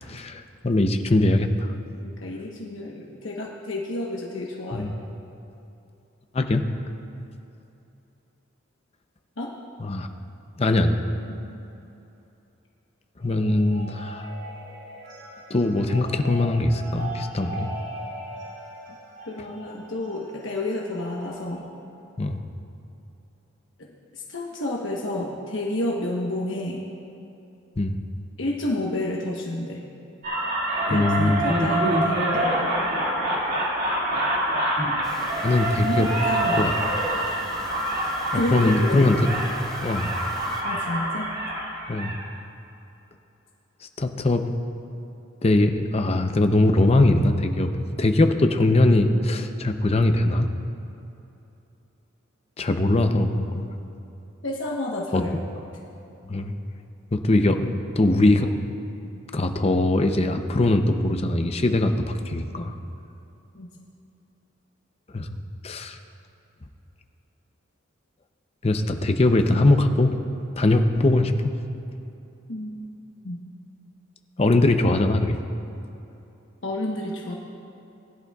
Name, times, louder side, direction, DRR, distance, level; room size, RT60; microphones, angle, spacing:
voice 1, 0.1-1.7 4.7-4.9 6.3-6.6 9.8-10.1 10.6-11.0 13.2-14.3 15.5-17.7 22.2-22.4 27.8-28.0 30.9-31.4 35.4-36.1 36.6-36.7 38.3-39.2 39.8-40.1 41.9-42.1 44.0-44.5 45.4-50.5 52.6-53.7 55.1-55.4 56.3-56.5 57.1-58.5 59.3-62.7 65.1-65.3 65.6-66.0 68.6-70.2 70.6-71.5 74.4-75.4, left 2 dB, 30° left, 6 dB, 0.6 m, -21 dB
voice 2, 2.0-4.9 9.4-9.5 11.3-11.5 19.2-21.6 24.1-26.8 28.4-29.8 30.9-31.1 31.4-32.7 35.7-36.7 38.3-39.1 40.6-41.3 54.4-55.3 63.5-63.7 72.5-72.8 73.2-73.4 76.6-77.4, left 1 dB, 70° left, -2 dB, 1.1 m, -30 dB
sound 1, 13.2-21.6, right 1 dB, 65° right, 2.4 m, -40 dB
sound 2, 30.2-42.2, right 1 dB, 45° right, 2.2 m, -26 dB
sound 3, 35.0-40.6, left 1 dB, ahead, 1.3 m, -43 dB
20.5 x 11.0 x 2.4 m, 2.9 s
head